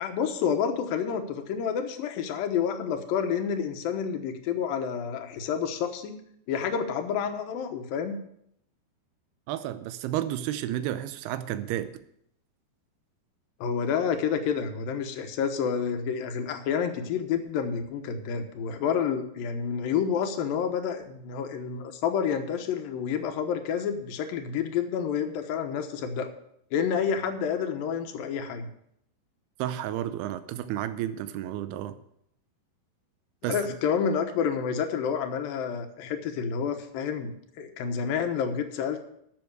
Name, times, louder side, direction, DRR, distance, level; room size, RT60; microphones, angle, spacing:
voice 1, 0.0-6.2 6.5-8.2 13.6-26.3 26.7-28.7 33.4-39.0, left 7 dB, 70° left, 2.7 m, -29 dB
voice 2, 9.5-12.0 29.6-32.0 33.4-33.6, right 12 dB, 85° right, 2.7 m, -31 dB
12.0 x 7.1 x 6.5 m
omnidirectional pair, 4.7 m